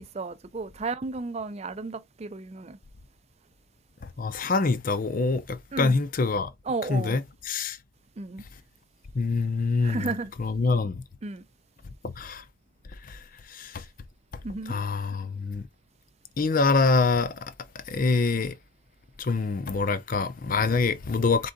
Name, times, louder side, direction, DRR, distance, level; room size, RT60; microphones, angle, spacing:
voice 1, 0.0-2.8 5.7-5.9 6.7-7.2 8.2-8.4 9.8-10.3 11.2-11.4 14.4-14.8, right 3 dB, 30° right, 0.4 m, -33 dB
voice 2, 4.2-6.5 6.9-7.8 9.1-10.1 10.4-11.0 12.2-12.4 13.1-13.2 13.5-13.8 14.7-15.7 16.4-17.5 17.9-18.5 19.2-21.5, left 4 dB, 40° left, 0.5 m, -25 dB
3.9 x 3.6 x 3.7 m
head